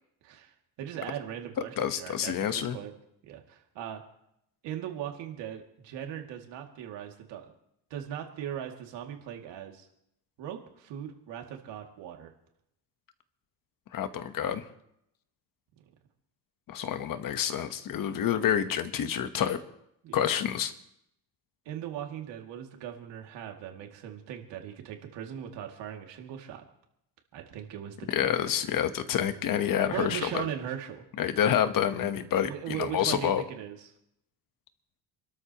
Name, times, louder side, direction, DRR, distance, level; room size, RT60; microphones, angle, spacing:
voice 1, 0.8-2.9 3.3-4.0 4.6-7.5 7.9-9.9 10.4-12.3 20.0-20.3 21.7-26.6 27.3-28.3 29.8-31.0 32.4-33.9, right 10 dB, 90° right, 2 dB, 2.5 m, -39 dB
voice 2, 1.8-2.8 13.9-14.6 16.7-19.6 20.1-20.7 28.1-30.5 31.2-33.4, left 9 dB, 50° left, 10 dB, 1.2 m, -28 dB
28.0 x 13.0 x 3.0 m, 0.78 s
cardioid pair, 150°, 42 cm